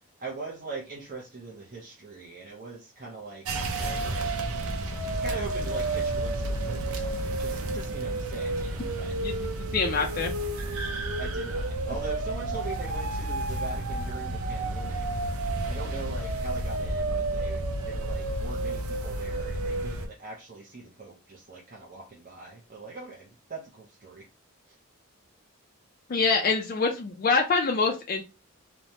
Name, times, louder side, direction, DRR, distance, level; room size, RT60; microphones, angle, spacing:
voice 1, 0.2-3.5 3.8-4.3 5.2-9.2 11.2-15.1 15.6-24.3 24.7-24.8, right 4 dB, 40° right, -3 dB, 0.5 m, -41 dB
sound 1, 3.5-20.1, right 2 dB, 90° right, 0.5 m, -30 dB
voice 2, 9.7-10.3 26.1-28.2, left 4 dB, 40° left, 2 dB, 0.3 m, -25 dB
3.1 x 2.1 x 2.7 m, 0.28 s
head